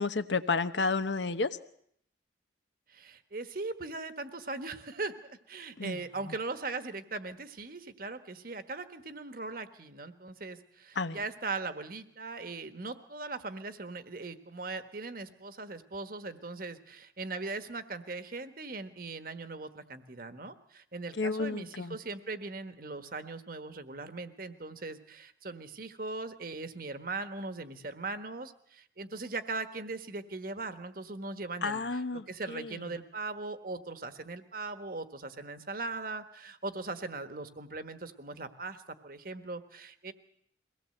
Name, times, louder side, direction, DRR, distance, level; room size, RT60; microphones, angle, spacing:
voice 1, 0.0-1.5 5.8-6.0 11.0-11.2 21.2-22.0 31.6-32.7, left 4 dB, 80° left, 11 dB, 1.0 m, -31 dB
voice 2, 2.9-32.0 32.3-40.1, right 3 dB, 50° right, 9 dB, 1.4 m, -39 dB
23.0 x 18.0 x 7.8 m, 0.68 s
head